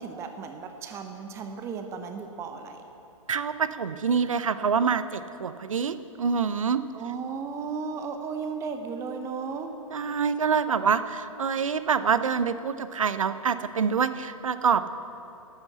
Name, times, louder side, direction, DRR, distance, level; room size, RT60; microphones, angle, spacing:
voice 1, 0.0-2.9 6.9-9.7, right 5 dB, 15° right, 6 dB, 0.7 m, -35 dB
voice 2, 3.3-6.8 9.9-14.9, right 6 dB, 70° right, 12 dB, 0.7 m, -26 dB
11.5 x 7.9 x 8.0 m, 2.8 s
figure-of-eight pair, 115°, 18 cm